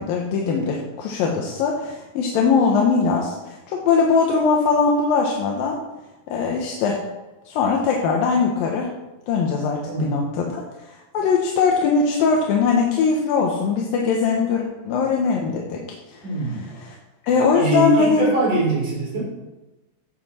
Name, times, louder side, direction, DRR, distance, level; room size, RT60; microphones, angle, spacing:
voice 1, 0.0-5.8 6.3-7.0 7.5-8.9 9.3-15.8 16.1-16.2 16.5-17.0 17.2-18.3, left 5 dB, 80° left, 0 dB, 2.8 m, -21 dB
voice 2, 9.9-10.2 16.2-16.6 17.5-19.2, right 1 dB, 65° right, -4 dB, 5.5 m, -22 dB
15.5 x 8.0 x 4.3 m, 1.1 s
omnidirectional pair, 4.0 m